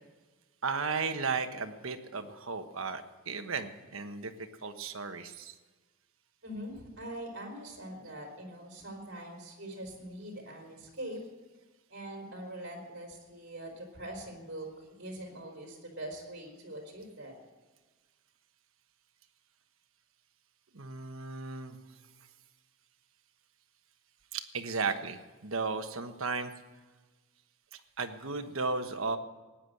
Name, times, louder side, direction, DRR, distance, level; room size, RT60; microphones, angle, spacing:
voice 1, 0.6-5.6 20.7-21.8 24.3-26.5 27.7-29.2, right 4 dB, 70° right, 8 dB, 1.2 m, -35 dB
voice 2, 6.4-11.2 11.9-17.3, right 1 dB, 55° right, 0 dB, 4.3 m, -43 dB
18.0 x 10.0 x 7.9 m, 1.3 s
head